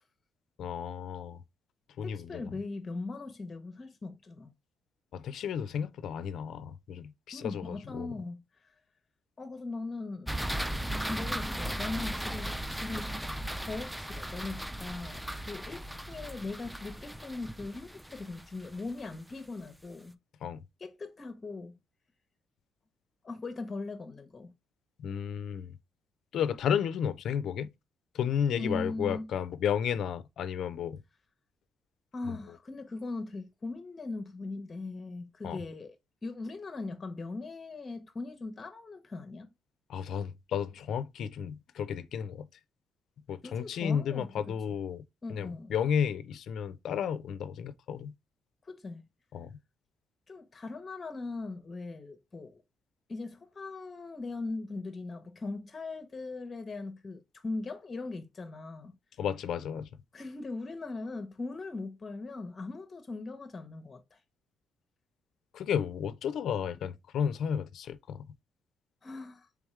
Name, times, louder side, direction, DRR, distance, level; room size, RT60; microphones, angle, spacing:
voice 1, 0.6-1.4 2.0-2.4 5.1-8.1 20.4-20.6 25.0-25.7 26.3-27.7 28.1-31.0 32.3-32.4 35.4-35.6 39.9-42.5 43.3-45.0 45.3-48.1 49.3-49.5 59.2-59.9 65.5-68.2, left 8 dB, 70° left, 0.4 m, -32 dB
voice 2, 2.0-4.5 7.3-8.4 9.4-10.3 10.8-13.1 13.6-20.2 20.8-21.8 23.2-24.5 28.5-29.3 32.1-39.5 43.4-44.8 45.2-45.7 48.6-49.0 50.3-52.6 53.1-58.9 60.1-64.2 69.0-69.5, left 3 dB, 30° left, 0.7 m, -40 dB
sound 1, 10.3-19.4, right 1 dB, 5° right, 0.4 m, -37 dB
3.5 x 3.4 x 3.1 m
cardioid pair, 90°, 0 cm